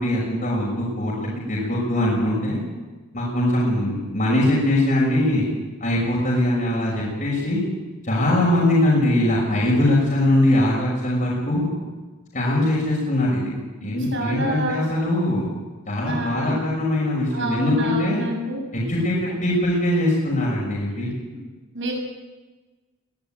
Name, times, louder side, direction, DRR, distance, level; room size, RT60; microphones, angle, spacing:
voice 1, 0.0-2.6 3.1-5.4 5.8-7.6 8.0-11.7 12.3-13.5 13.8-15.5 15.9-18.2 18.7-21.1, left 1 dB, 35° left, -4 dB, 6.2 m, -21 dB
voice 2, 13.8-14.9 16.0-16.6 17.3-18.6 19.3-19.4 21.3-21.4 21.7-21.9, right 1 dB, 55° right, 1 dB, 7.5 m, -28 dB
22.0 x 17.0 x 9.2 m, 1.3 s
head